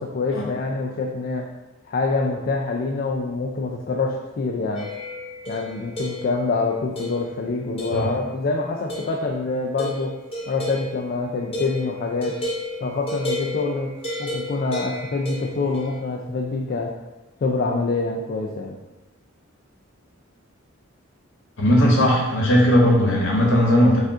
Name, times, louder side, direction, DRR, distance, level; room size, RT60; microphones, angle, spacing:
voice 1, 0.0-1.5 1.9-4.9 5.5-10.1 10.5-12.4 12.8-13.9 14.2-16.9 17.4-18.8, left 3 dB, 45° left, 0 dB, 0.3 m, -25 dB
sound 1, 4.8-6.5 7.0-7.4 7.8-8.4 8.9-9.3 9.8-16.0, left 1 dB, 30° left, 0.9 m, -33 dB
voice 2, 21.6-24.0, equal, 65° left, -1 dB, 1.0 m, -17 dB
4.9 x 2.5 x 3.6 m, 1.1 s
head